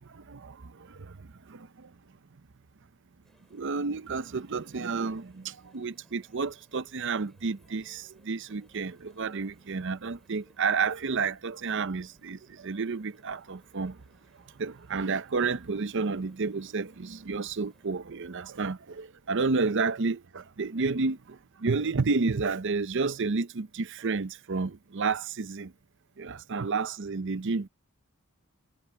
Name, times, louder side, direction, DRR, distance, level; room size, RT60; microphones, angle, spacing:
voice 1, 0.1-1.9 3.5-14.0 14.6-25.7 26.2-27.7, right 4 dB, 60° right, 0.7 m, -31 dB
sound 1, 3.2-17.9, equal, ahead, 8.0 m, -66 dB
head